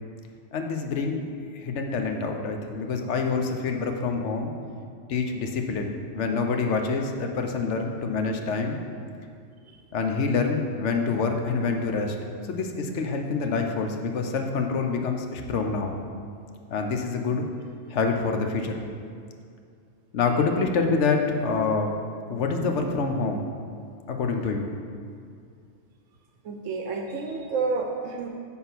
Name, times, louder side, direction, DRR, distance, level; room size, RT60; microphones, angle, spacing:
voice 1, 0.5-1.2 1.5-4.5 5.1-8.8 9.9-12.2 12.5-15.9 16.7-17.5 17.9-18.7 20.1-22.0 22.3-23.5 24.1-24.7, left 4 dB, 65° left, 4 dB, 1.1 m, -26 dB
voice 2, 26.4-28.3, right 4 dB, 80° right, 3 dB, 1.0 m, -30 dB
9.7 x 3.8 x 6.0 m, 2.3 s
omnidirectional pair, 1.3 m